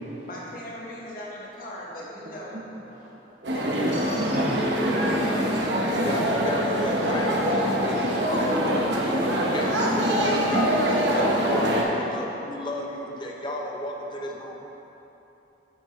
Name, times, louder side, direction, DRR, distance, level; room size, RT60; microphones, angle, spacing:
voice 1, 0.2-2.6 3.5-3.8, left 1 dB, 50° left, -4 dB, 1.5 m, -39 dB
voice 2, 3.4-6.0, right 1 dB, 45° right, -7 dB, 0.9 m, -34 dB
sound 1, 3.4-11.8, equal, 80° right, 1.1 m, -24 dB
voice 3, 5.9-9.1 9.4-14.6, left 1 dB, 25° left, 0 dB, 0.6 m, -34 dB
9.1 x 8.3 x 3.2 m, 3.0 s
head